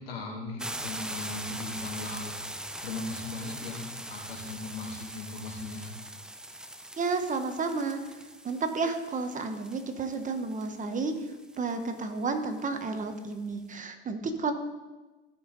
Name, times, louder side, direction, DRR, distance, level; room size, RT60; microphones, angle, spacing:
voice 1, 0.0-2.4 2.8-5.9, left 3 dB, 90° left, -1 dB, 2.6 m, -38 dB
sound 1, 0.6-13.3, right 1 dB, 5° right, 0.5 m, -42 dB
voice 2, 7.0-8.0 8.4-11.2 11.6-14.5, right 4 dB, 25° right, 7 dB, 1.1 m, -31 dB
16.5 x 5.5 x 4.0 m, 1.2 s
supercardioid pair, 100°, 29 cm